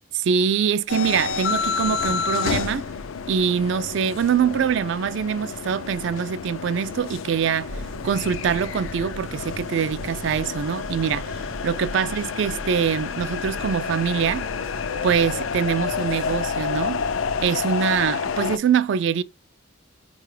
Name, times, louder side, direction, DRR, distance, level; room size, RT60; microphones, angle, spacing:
voice 1, 0.2-2.9 3.3-14.5 15.0-17.0 17.4-19.2, right 7 dB, 65° right, 0.3 m, -24 dB
sound 1, 0.9-18.6, left 5 dB, 80° left, 0.4 m, -29 dB
sound 2, 7.7-17.5, equal, 85° right, 0.7 m, -39 dB
4.8 x 2.3 x 3.1 m
head